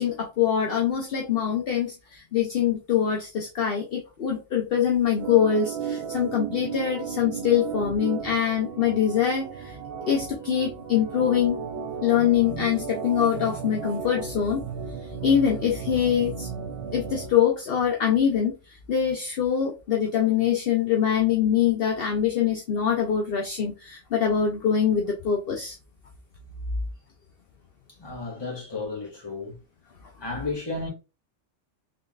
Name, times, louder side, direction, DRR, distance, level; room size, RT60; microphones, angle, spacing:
voice 1, 0.0-9.8 10.1-11.6 12.0-14.6 15.2-16.5 16.9-25.8, left 8 dB, 60° left, 0.8 m, -24 dB
Organ, 5.2-17.3, right 6 dB, 70° right, 0.9 m, -35 dB
voice 2, 28.0-29.6 30.2-30.9, left 3 dB, 20° left, 1.3 m, -33 dB
3.9 x 3.4 x 2.3 m
omnidirectional pair, 1.2 m